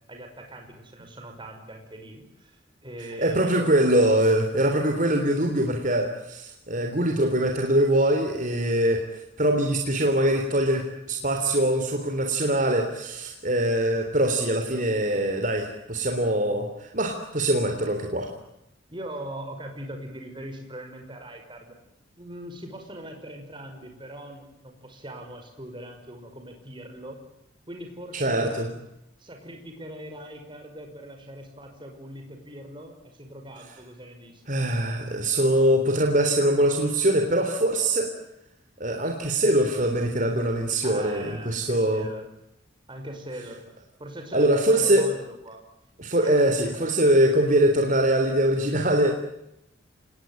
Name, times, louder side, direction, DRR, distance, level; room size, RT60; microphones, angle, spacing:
voice 1, 0.1-3.9 6.8-7.0 18.9-21.7 22.2-27.2 27.7-28.7 29.2-34.5 40.8-42.3 42.9-43.6 44.0-45.6 46.2-47.1, right 1 dB, 25° right, 3 dB, 5.6 m, -41 dB
voice 2, 3.2-18.3 28.1-28.7 34.5-38.1 38.8-42.1 44.3-45.1 46.0-49.1, right 1 dB, 40° right, 3 dB, 3.4 m, -23 dB
27.0 x 20.5 x 9.1 m, 0.85 s
head